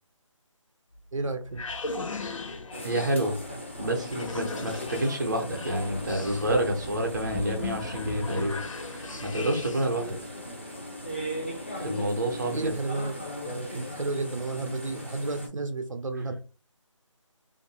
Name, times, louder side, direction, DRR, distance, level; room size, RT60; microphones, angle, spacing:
sound 1, 1.0-10.0, left 3 dB, 75° left, 0.6 m, -38 dB
voice 1, 1.1-1.6 12.5-13.1 13.4-16.4, right 3 dB, 75° right, 0.7 m, -32 dB
sound 2, 2.7-15.5, equal, 20° left, 0.4 m, -38 dB
voice 2, 2.8-3.3 3.8-8.6 8.9-10.2 11.8-12.7, right 1 dB, 35° right, 0.7 m, -28 dB
2.6 x 2.6 x 2.7 m
figure-of-eight pair, 175°, 17 cm